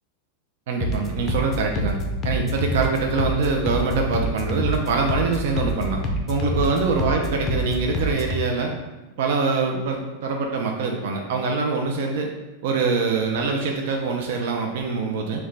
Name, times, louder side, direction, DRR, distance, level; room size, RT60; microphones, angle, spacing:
voice 1, 0.7-6.0 6.3-8.7 9.2-12.3 12.6-15.5, right 4 dB, 60° right, 2 dB, 0.5 m, -24 dB
sound 1, 0.8-8.4, left 1 dB, 20° left, 0.5 m, -27 dB
5.9 x 2.2 x 3.3 m, 1.1 s
supercardioid pair, 170°, 0 cm